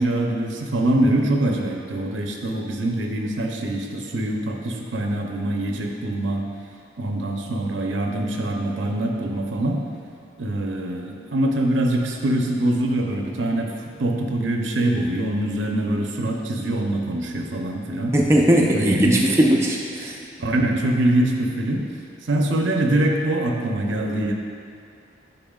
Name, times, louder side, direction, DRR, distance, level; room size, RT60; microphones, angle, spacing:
voice 1, 0.0-6.4 7.0-9.8 10.4-13.7 14.0-18.2 18.7-19.2 20.4-21.8 22.3-24.3, right 1 dB, 85° right, 1 dB, 0.7 m, -23 dB
voice 2, 18.1-20.1, equal, 15° right, -2 dB, 0.4 m, -18 dB
8.8 x 5.6 x 2.4 m, 2.6 s
head